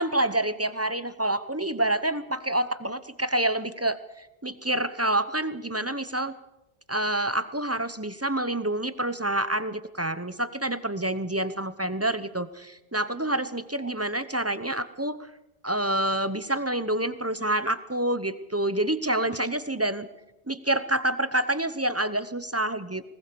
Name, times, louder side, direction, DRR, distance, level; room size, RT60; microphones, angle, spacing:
voice 1, 0.0-6.3 6.9-15.2 15.6-20.1 20.5-23.0, right 1 dB, 15° right, 13 dB, 0.8 m, -27 dB
20.0 x 19.5 x 6.9 m, 0.94 s
omnidirectional pair, 1.1 m